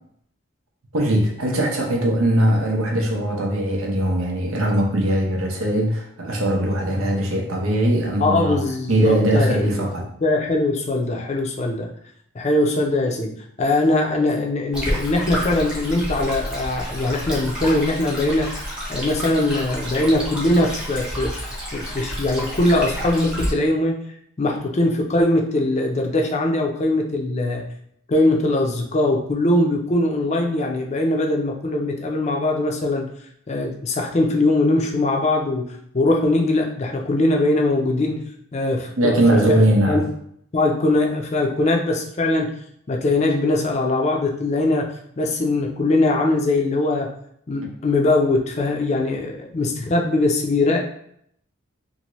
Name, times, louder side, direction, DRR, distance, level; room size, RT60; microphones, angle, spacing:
voice 1, 0.9-8.6 8.9-10.0 39.0-40.0, right 1 dB, 85° right, 0 dB, 0.8 m, -20 dB
voice 2, 8.2-9.9 10.2-11.9 12.3-13.3 13.6-18.5 18.9-24.0 24.4-27.6 28.1-33.1 33.5-38.2 38.5-39.6 39.9-40.0 40.5-42.5 42.9-44.9 45.2-47.1 47.5-50.8, left 2 dB, 30° left, 1 dB, 0.4 m, -21 dB
Stream, 14.7-23.5, equal, 5° right, 0.7 m, -29 dB
2.8 x 2.6 x 2.9 m, 0.70 s
head